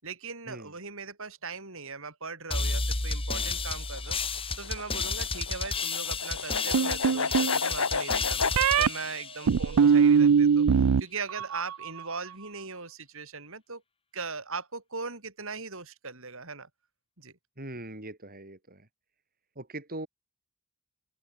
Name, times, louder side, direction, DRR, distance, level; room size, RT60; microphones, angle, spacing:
voice 1, 0.0-4.2 4.6-10.7 11.0-13.8 14.1-16.7 17.2-17.3, right 4 dB, 60° right, 7.9 m, -39 dB
sound 1, 2.5-10.0, left 4 dB, 25° left, 2.8 m, -32 dB
sound 2, 3.8-8.6, left 5 dB, 70° left, 1.9 m, -32 dB
sound 3, 6.7-7.6 8.5-8.9 9.5-11.0 11.3-11.9, right 6 dB, 85° right, 0.5 m, -21 dB
voice 2, 17.6-18.9 19.6-20.1, right 1 dB, 40° right, 5.7 m, -41 dB
open air
head